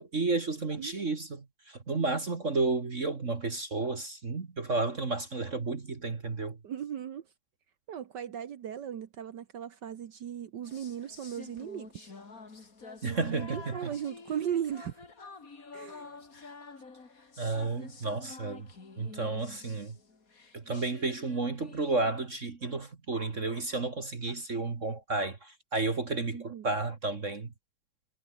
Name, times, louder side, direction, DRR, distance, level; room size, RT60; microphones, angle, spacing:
voice 1, 0.0-6.6 13.0-13.9 17.4-18.7 19.0-20.0 20.5-27.5, right 3 dB, 30° right, 1.6 m, -32 dB
voice 2, 0.8-1.1 6.6-7.3 7.9-12.1 13.0-15.1 15.7-16.2 26.3-26.7, right 9 dB, 85° right, 0.9 m, -37 dB
sound 1, 10.6-22.2, left 4 dB, 30° left, 3.0 m, -49 dB
omnidirectional pair, 3.5 m